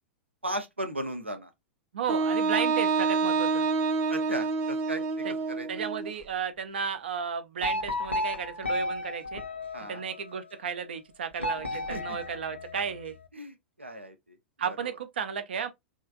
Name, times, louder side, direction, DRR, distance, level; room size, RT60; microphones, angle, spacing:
voice 1, 0.4-1.5 4.1-5.7 9.7-10.0 11.9-12.2 13.3-14.4 14.7-15.0, right 1 dB, 85° right, 1.0 m, -36 dB
voice 2, 1.9-3.7 5.2-5.3 5.7-9.4 9.9-13.2 14.6-15.7, right 7 dB, 65° right, 0.7 m, -33 dB
Wind instrument woodwind instrument, 2.1-6.1, right 4 dB, 35° right, 0.8 m, -27 dB
sound 1, 7.6-10.3 11.4-13.2, left 1 dB, 85° left, 0.9 m, -33 dB
4.8 x 2.9 x 2.6 m
figure-of-eight pair, 95°, 6 cm